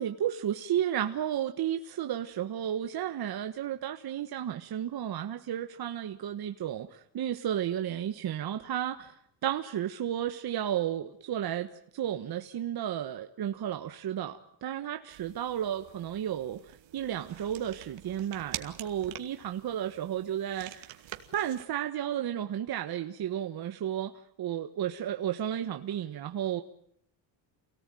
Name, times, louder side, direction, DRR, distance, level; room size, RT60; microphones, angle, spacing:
voice 1, 0.0-9.1 9.4-16.6 16.9-20.9 21.3-24.1 24.4-26.6, right 10 dB, 50° right, 6 dB, 1.5 m, -33 dB
sound 1, 15.1-21.7, right 13 dB, 70° right, 2.5 m, -46 dB
28.0 x 18.5 x 9.2 m, 0.74 s
cardioid pair, 115°, 48 cm